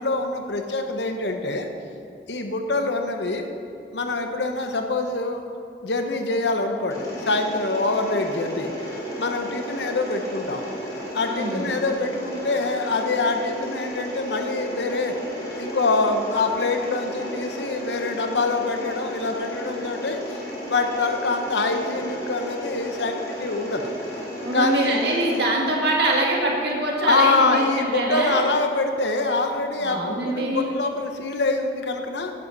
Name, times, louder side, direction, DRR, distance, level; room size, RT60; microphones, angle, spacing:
voice 1, 0.0-1.7 2.3-3.5 3.9-5.4 5.8-8.7 9.2-10.6 11.1-15.1 15.5-20.4 20.7-23.9 24.5-25.0 27.0-32.3, left 3 dB, 80° left, 5 dB, 1.0 m, -25 dB
Mechanisms, 6.9-25.4, equal, 20° left, 2.3 m, -34 dB
voice 2, 11.2-11.7 24.4-28.4 29.8-30.7, right 1 dB, 65° right, -2 dB, 2.1 m, -24 dB
11.0 x 10.0 x 4.1 m, 2.8 s
head